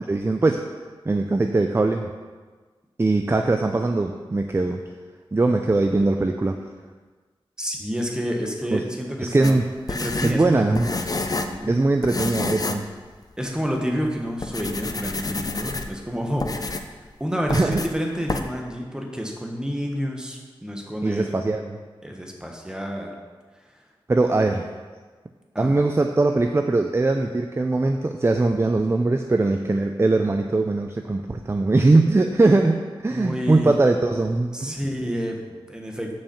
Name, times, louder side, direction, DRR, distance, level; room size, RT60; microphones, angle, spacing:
voice 1, 0.1-0.6 1.1-2.1 3.0-4.8 5.3-6.6 8.7-8.8 9.2-9.7 10.2-10.9 11.6-12.8 17.5-17.8 21.0-21.8 24.1-24.7 25.6-34.8, right 2 dB, 25° right, 5 dB, 0.5 m, -21 dB
voice 2, 7.6-9.5 9.9-11.8 13.4-16.9 17.2-21.3 22.0-23.1 25.5-25.8 33.1-33.7 34.5-36.1, equal, 10° right, 0 dB, 1.4 m, -29 dB
sound 1, 9.4-11.6 12.0-12.9 13.2-13.3 13.9-14.1 14.4-16.0 16.4-17.0 17.5-17.9 18.3-18.4, left 3 dB, 40° left, 0.6 m, -29 dB
7.4 x 5.5 x 7.0 m, 1.4 s
wide cardioid pair, 100°, 9 cm